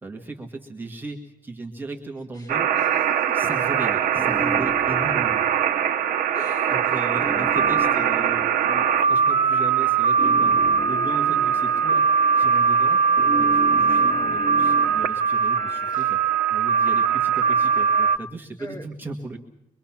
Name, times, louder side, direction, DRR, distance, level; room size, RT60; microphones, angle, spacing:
voice 1, 0.0-2.7 3.3-5.4 6.7-13.0 13.4-19.4, right 3 dB, 15° right, 1 dB, 1.6 m, -37 dB
voice 2, 2.3-3.2 6.3-7.0 15.9-16.1 18.6-18.8, equal, 25° left, 1 dB, 3.1 m, -42 dB
sound 1, 2.5-14.9, right 1 dB, ahead, 7.1 m, -36 dB
High Splitter, 2.5-18.2, right 6 dB, 80° right, 1.0 m, -21 dB
24.0 x 23.5 x 5.9 m, 0.82 s
cardioid pair, 175°, 14 cm